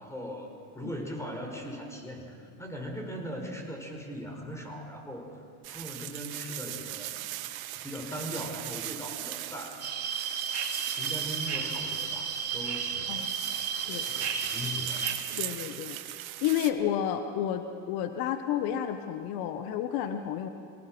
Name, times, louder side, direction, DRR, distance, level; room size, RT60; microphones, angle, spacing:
voice 1, 0.0-5.3 5.7-7.1 7.8-9.8 11.0-13.3 13.8-15.1, equal, 5° left, 1 dB, 4.7 m, -39 dB
sound 1, 5.6-16.7, right 14 dB, 85° right, 1.1 m, -39 dB
sound 2, 9.8-15.1, right 6 dB, 35° right, 2.8 m, -33 dB
voice 2, 15.4-16.0 16.4-17.6 17.9-20.5, left 10 dB, 65° left, 8 dB, 1.3 m, -30 dB
25.0 x 19.0 x 6.1 m, 2.3 s
supercardioid pair, 90°, 40 cm